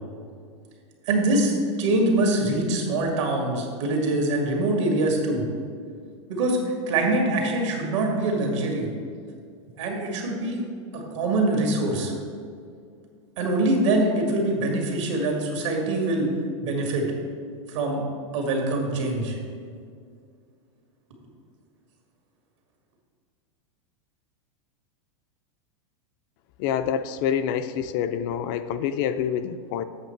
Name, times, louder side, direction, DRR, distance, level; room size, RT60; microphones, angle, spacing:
voice 1, 1.1-5.5 6.3-8.9 9.8-10.6 10.9-12.1 13.4-16.3 16.6-17.1 17.7-18.0 18.3-19.4, right 2 dB, 75° right, 1 dB, 2.0 m, -24 dB
voice 2, 26.6-29.8, left 8 dB, 45° left, 11 dB, 0.4 m, -27 dB
8.1 x 6.4 x 4.5 m, 2.2 s
supercardioid pair, 140°, 16 cm